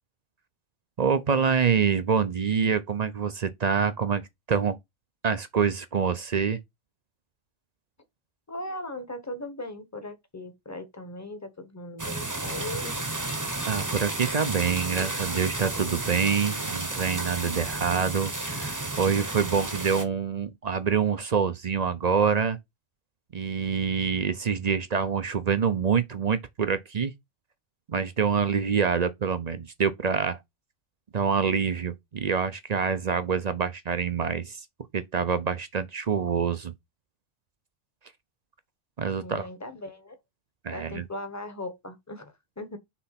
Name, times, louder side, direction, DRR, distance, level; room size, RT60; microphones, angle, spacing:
voice 1, 1.0-4.2 4.5-4.8 5.2-6.6 13.6-22.6 23.3-27.1 27.9-30.4 31.1-34.6 34.9-36.7 39.0-39.5 40.6-41.0, right 6 dB, 45° right, 0.6 m, -26 dB
voice 2, 8.5-12.9 39.2-40.2 40.7-42.8, left 1 dB, 15° left, 1.0 m, -38 dB
sound 1, 12.0-20.0, right 2 dB, 15° right, 0.9 m, -32 dB
6.0 x 3.3 x 5.8 m
omnidirectional pair, 1.3 m